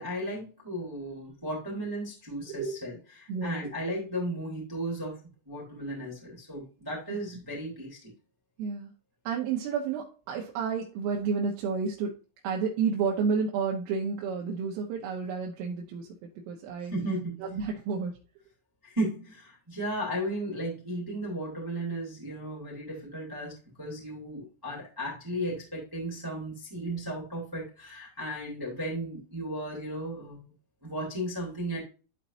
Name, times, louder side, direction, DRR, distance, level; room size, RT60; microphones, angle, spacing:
voice 1, 0.0-5.2 5.5-8.1 16.9-17.4 18.8-23.5 23.8-30.5 30.8-31.8, right 1 dB, 5° right, -3 dB, 1.9 m, -35 dB
voice 2, 3.3-3.6 7.1-7.2 8.6-8.9 9.3-12.2 12.4-16.9 17.4-18.1, right 5 dB, 90° right, -2 dB, 3.8 m, -31 dB
12.5 x 4.3 x 2.7 m, 0.34 s
omnidirectional pair, 5.7 m